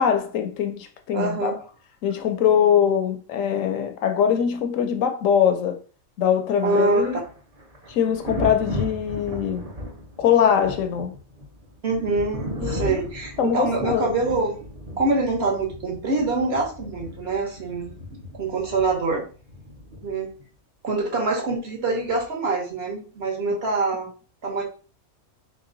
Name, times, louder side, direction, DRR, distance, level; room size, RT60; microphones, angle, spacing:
voice 1, 0.0-1.5 2.0-5.8 6.2-7.2 7.9-9.7 10.2-11.1 12.6-13.1 13.4-14.2, left 8 dB, 75° left, 0.9 m, -22 dB
voice 2, 1.1-1.6 6.6-7.1 11.8-14.5 15.0-19.3 20.0-20.3 20.8-24.1 24.4-24.6, right 3 dB, 50° right, 1.2 m, -25 dB
Thunder, 6.8-20.4 22.1-22.3, left 1 dB, 35° right, 0.7 m, -36 dB
3.2 x 3.0 x 3.8 m
omnidirectional pair, 1.4 m